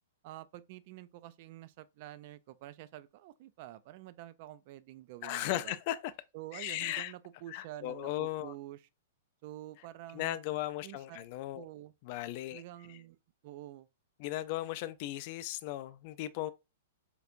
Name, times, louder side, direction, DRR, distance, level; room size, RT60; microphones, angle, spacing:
voice 1, 0.2-5.8 6.3-8.9 9.4-10.4 10.8-11.3 11.5-11.9 12.5-13.2 13.4-13.9, right 14 dB, 45° right, 0.3 m, -48 dB
voice 2, 5.2-6.1 6.5-7.1 7.5-8.5 10.1-11.6 12.0-12.6 14.2-16.5, left 14 dB, 45° left, 0.3 m, -36 dB
4.5 x 2.4 x 2.5 m
figure-of-eight pair, 105°, 0 cm